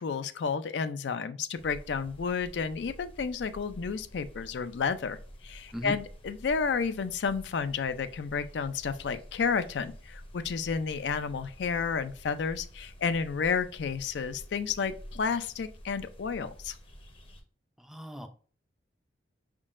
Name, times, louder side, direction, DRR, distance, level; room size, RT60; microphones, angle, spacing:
voice 1, 0.0-5.2 5.4-16.8, left 5 dB, 70° left, 11 dB, 0.4 m, -31 dB
sound 1, 1.5-17.4, equal, 30° left, 0.7 m, -49 dB
voice 2, 17.8-18.3, equal, ahead, 6 dB, 0.4 m, -38 dB
5.3 x 3.7 x 2.5 m, 0.42 s
head